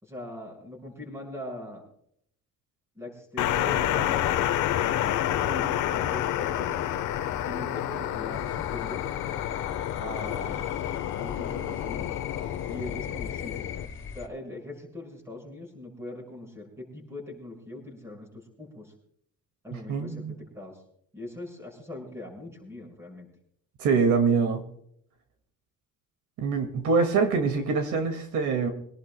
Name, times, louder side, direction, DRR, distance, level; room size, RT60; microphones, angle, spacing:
voice 1, 0.0-1.8 2.9-4.4 5.3-6.9 7.4-9.0 10.0-10.7 11.2-12.1 12.7-13.6 14.1-18.9 19.6-20.8 21.1-23.3, left 1 dB, 10° right, 0 dB, 5.9 m, -41 dB
sound 1, 3.4-13.9, left 11 dB, 70° left, 1.1 m, -29 dB
sound 2, 8.3-14.3, left 7 dB, 40° left, 2.6 m, -40 dB
voice 2, 19.7-20.3 23.8-24.6 26.4-28.7, right 5 dB, 70° right, 6 dB, 2.1 m, -24 dB
25.0 x 18.0 x 2.2 m, 0.68 s
cardioid pair, 160°, 31 cm